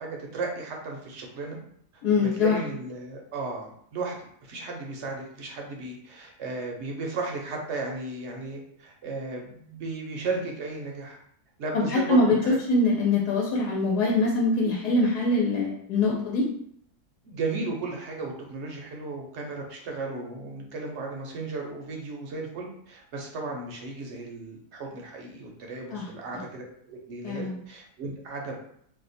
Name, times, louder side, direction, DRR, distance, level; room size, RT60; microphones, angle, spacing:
voice 1, 0.0-1.6 2.2-4.1 4.4-11.2 11.6-12.6 16.0-16.1 17.2-28.6, right 3 dB, 65° right, 0 dB, 0.7 m, -35 dB
voice 2, 2.0-2.6 11.7-16.5 25.9-26.0 27.2-27.6, left 2 dB, 85° left, -3 dB, 1.2 m, -23 dB
2.7 x 2.1 x 4.0 m, 0.68 s
omnidirectional pair, 1.7 m